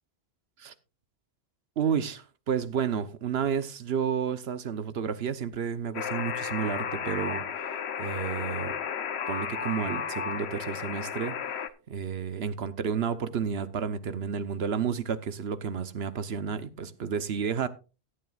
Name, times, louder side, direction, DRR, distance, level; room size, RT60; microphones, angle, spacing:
voice 1, 1.8-7.4 8.0-8.8 9.3-11.4 11.9-17.7, right 7 dB, 75° right, 1.1 m, -31 dB
Alarm, 5.9-11.7, left 7 dB, 85° left, 1.1 m, -33 dB
16.5 x 11.0 x 2.4 m
omnidirectional pair, 1.1 m